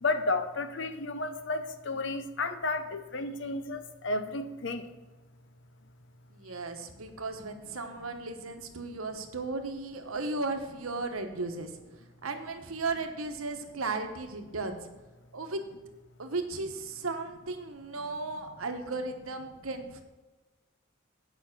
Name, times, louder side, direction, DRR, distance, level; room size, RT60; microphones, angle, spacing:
voice 1, 0.0-4.9, left 3 dB, 60° left, 9 dB, 0.8 m, -32 dB
voice 2, 6.3-11.7 12.2-14.9 15.3-15.6 16.2-20.0, right 3 dB, 80° right, 6 dB, 1.1 m, -35 dB
9.2 x 5.7 x 7.2 m, 1.2 s
head